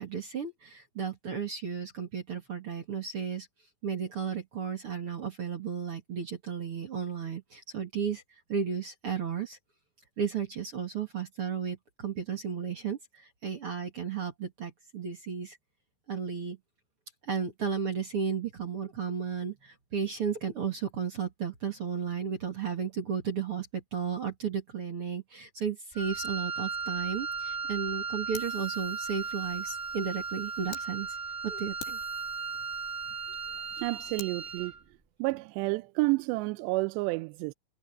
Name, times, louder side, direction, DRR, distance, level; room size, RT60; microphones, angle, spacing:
voice 1, 0.0-3.5 3.8-8.2 8.5-9.6 10.2-15.6 16.1-16.6 17.2-31.2 31.4-32.0, right 7 dB, 40° right, 2.2 m, -34 dB
Wind instrument woodwind instrument, 25.9-34.8, right 5 dB, 10° right, 4.4 m, -36 dB
Fire, 28.3-30.9 31.3-31.4 31.8-34.3, left 8 dB, 85° left, 5.3 m, -50 dB
voice 2, 33.8-34.7 35.2-37.5, right 24 dB, 90° right, 2.8 m, -30 dB
omnidirectional pair, 4.9 m